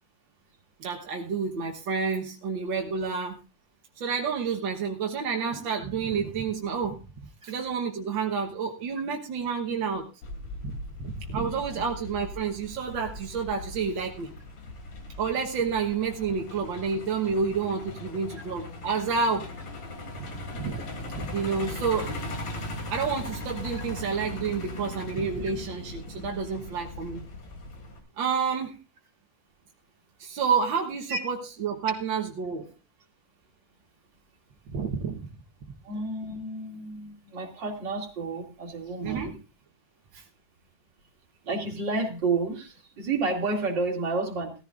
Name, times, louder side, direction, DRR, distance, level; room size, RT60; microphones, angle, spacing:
voice 1, 0.8-3.4 4.0-7.0 7.4-10.1 10.6-10.7 11.0-14.3 15.2-19.5 20.2-20.3 20.5-20.8 21.1-22.1 22.9-27.2 28.2-28.8 30.2-32.7 34.7-35.2 39.0-39.3 40.1-40.2, right 5 dB, 55° right, 1 dB, 1.4 m, -29 dB
Truck, 10.2-28.0, left 1 dB, 80° left, 4.6 m, -39 dB
voice 2, 11.4-11.8 31.1-31.2 35.8-39.4 41.4-44.5, right 3 dB, 35° right, 1 dB, 2.9 m, -30 dB
18.0 x 14.5 x 2.5 m, 0.30 s
omnidirectional pair, 3.7 m